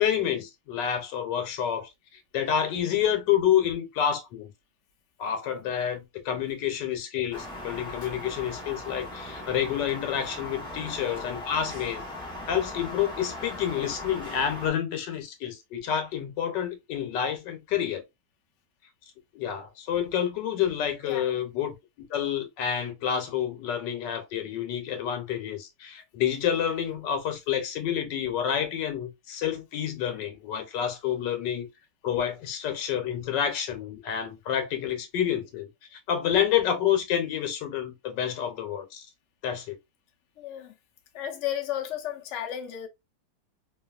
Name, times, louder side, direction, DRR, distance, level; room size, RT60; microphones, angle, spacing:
voice 1, 0.0-1.9 2.3-4.5 5.2-12.0 12.5-18.0 19.3-21.7 22.1-31.7 32.0-39.1 39.4-39.8, left 9 dB, 90° left, 1.3 m, -28 dB
sound 1, 7.3-14.7, left 1 dB, 5° left, 0.4 m, -39 dB
voice 2, 21.0-21.4 40.4-40.7 41.1-42.9, left 10 dB, 65° left, 0.7 m, -33 dB
2.9 x 2.3 x 2.3 m
omnidirectional pair, 1.9 m